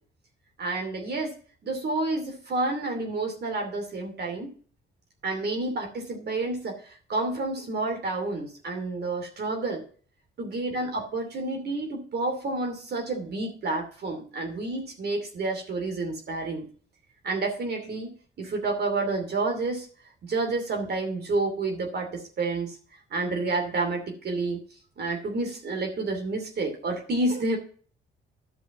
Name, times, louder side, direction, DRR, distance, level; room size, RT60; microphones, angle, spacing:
voice 1, 0.6-1.3 1.6-4.5 5.2-6.8 7.1-9.8 10.4-16.7 17.2-19.9 20.2-22.8 23.1-24.6 25.0-27.6, right 2 dB, 55° right, 3 dB, 2.7 m, -29 dB
12.0 x 5.2 x 5.9 m, 0.43 s
cardioid pair, 90°, 20 cm